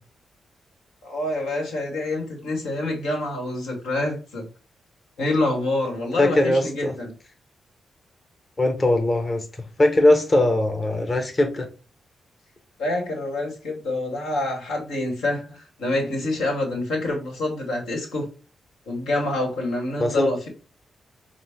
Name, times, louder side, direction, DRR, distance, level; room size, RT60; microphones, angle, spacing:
voice 1, 1.0-4.5 5.2-7.1 12.8-18.3 18.9-20.5, left 2 dB, 85° left, 1.3 m, -27 dB
voice 2, 6.2-6.9 8.6-9.5 9.8-11.7 20.0-20.3, left 1 dB, 40° left, 1.1 m, -20 dB
5.8 x 2.0 x 3.5 m
supercardioid pair, 45°, 0 cm